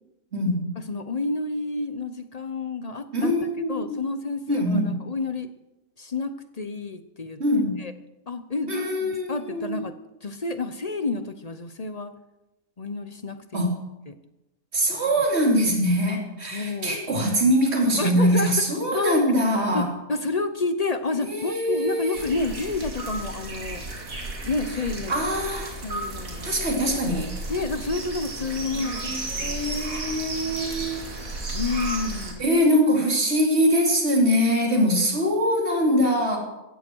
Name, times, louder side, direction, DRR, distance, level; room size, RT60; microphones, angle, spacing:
voice 1, 0.3-0.7 3.1-4.0 4.5-5.0 7.4-7.8 8.7-9.8 13.5-13.8 14.7-19.9 21.2-22.2 25.1-25.8 26.4-27.3 28.7-31.0 32.4-36.4, equal, 45° right, 1 dB, 3.2 m, -23 dB
voice 2, 0.9-3.3 3.7-5.5 6.0-7.4 7.8-7.9 8.3-9.9 10.2-12.1 12.8-13.7 14.1-14.2 14.8-15.0 16.5-17.0 18.0-18.5 18.9-19.3 19.7-23.8 24.4-25.2 25.8-26.6 27.5-29.8 31.5-32.4 34.8-34.9, left 3 dB, 35° left, 10 dB, 0.6 m, -30 dB
sound 1, 22.1-32.3, right 2 dB, 65° right, 2.8 m, -33 dB
16.5 x 14.0 x 4.6 m, 0.97 s
omnidirectional pair, 1.5 m